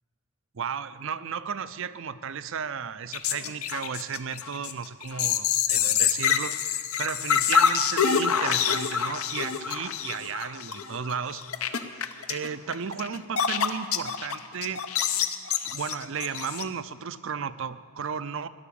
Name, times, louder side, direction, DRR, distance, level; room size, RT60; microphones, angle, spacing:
voice 1, 0.5-11.5 12.3-14.8 15.6-18.5, right 6 dB, 60° right, 14 dB, 0.5 m, -34 dB
sound 1, 3.1-14.4 14.6-16.6, left 8 dB, 85° left, 0.9 m, -26 dB
16.5 x 11.0 x 7.0 m, 2.1 s
head